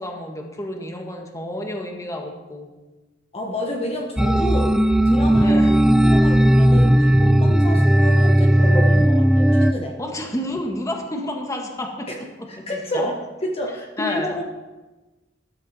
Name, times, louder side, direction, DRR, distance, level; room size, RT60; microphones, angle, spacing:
voice 1, 0.0-2.7 5.4-5.7 7.7-7.9 10.0-12.1 12.6-13.1 14.0-14.4, left 1 dB, 20° left, 2 dB, 1.6 m, -30 dB
voice 2, 3.3-4.8 5.0-5.7 6.0-10.0 12.1-12.2 12.5-14.4, left 1 dB, 35° left, 0 dB, 1.4 m, -29 dB
sound 1, 4.2-9.7, right 1 dB, 5° right, 0.4 m, -16 dB
14.0 x 13.0 x 4.2 m, 1.2 s
head